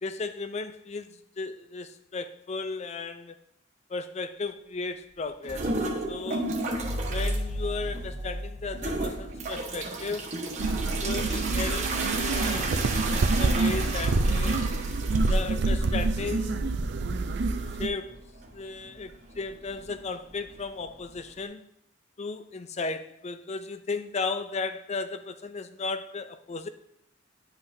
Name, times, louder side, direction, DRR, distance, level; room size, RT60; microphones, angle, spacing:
voice 1, 0.0-3.4 3.9-5.7 6.1-6.5 7.1-10.3 11.0-12.7 13.3-14.6 15.3-16.7 17.8-18.2 18.5-21.6 22.2-26.7, left 4 dB, 35° left, 0.4 m, -35 dB
sound 1, 5.4-7.4 7.8-8.3 8.7-21.4, right 2 dB, 40° right, 1.2 m, -34 dB
sound 2, 6.7-10.1, equal, 20° right, 1.7 m, -34 dB
sound 3, 10.6-17.9, right 3 dB, 60° right, 0.4 m, -27 dB
10.5 x 5.6 x 2.7 m
head